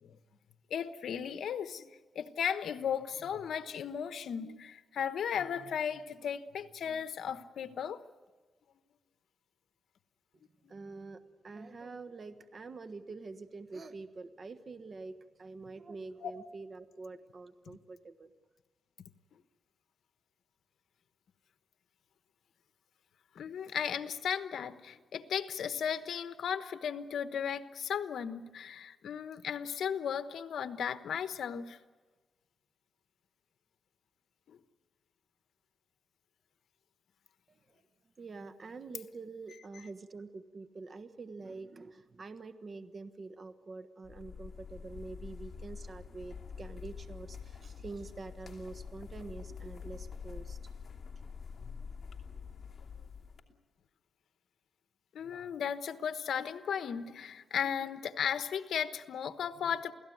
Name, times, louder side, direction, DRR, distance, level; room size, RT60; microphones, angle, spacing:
voice 1, 0.7-8.0 16.2-16.3 17.7-17.8 23.3-31.8 34.5-34.6 55.1-59.9, left 8 dB, 80° left, 10 dB, 1.2 m, -36 dB
voice 2, 10.7-18.3 38.2-50.6 52.3-52.4, right 3 dB, 45° right, 9 dB, 1.3 m, -46 dB
sound 1, 44.0-53.4, left 6 dB, 45° left, 2.9 m, -46 dB
28.5 x 17.5 x 9.4 m, 1.3 s
cardioid pair, 95°, 0 cm